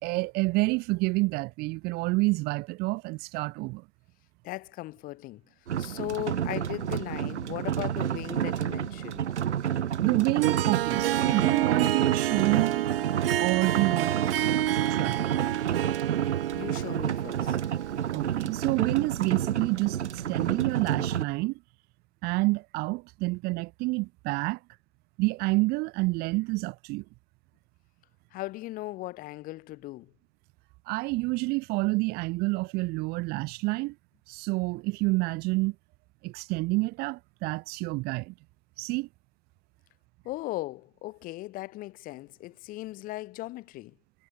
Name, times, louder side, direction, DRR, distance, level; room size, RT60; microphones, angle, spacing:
voice 1, 0.0-3.8 10.0-12.9 13.4-14.2 14.7-15.2 18.1-21.6 22.2-24.6 25.2-27.0 30.9-33.9 34.3-35.7 36.2-38.3 38.8-39.1, right 24 dB, 25° right, 4.1 m, -28 dB
voice 2, 4.4-5.4 5.8-9.3 16.5-17.6 28.3-30.1 40.2-43.9, left 18 dB, 25° left, 4.5 m, -38 dB
sound 1, 5.7-21.3, right 9 dB, 85° right, 2.0 m, -30 dB
Harp, 10.4-18.8, right 13 dB, 55° right, 3.5 m, -30 dB
hypercardioid pair, 160°, 34 cm